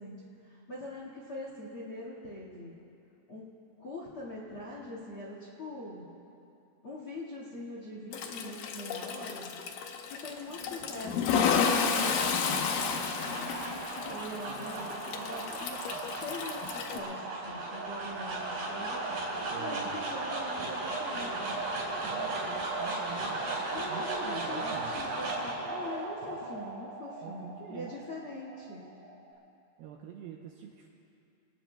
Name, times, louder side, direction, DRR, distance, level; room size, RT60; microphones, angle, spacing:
voice 1, 0.0-2.7 3.3-3.5 3.8-6.0 6.8-9.5 10.1-13.5 14.1-19.1 19.5-21.6 23.7-28.8, left 1 dB, 50° left, -4 dB, 1.6 m, -43 dB
Toilet flush, 8.1-17.0, left 6 dB, 85° left, 1.9 m, -32 dB
sound 1, 11.0-29.3, right 2 dB, 55° right, 6.1 m, -36 dB
voice 2, 14.5-14.9 19.5-20.0 22.0-23.5 23.8-25.0 27.2-28.0 29.3-29.4 29.8-30.9, right 8 dB, 85° right, 0 dB, 2.2 m, -46 dB
sound 2, 18.3-26.5, equal, 30° right, 4.3 m, -54 dB
27.0 x 19.0 x 2.3 m, 2.7 s
omnidirectional pair, 5.3 m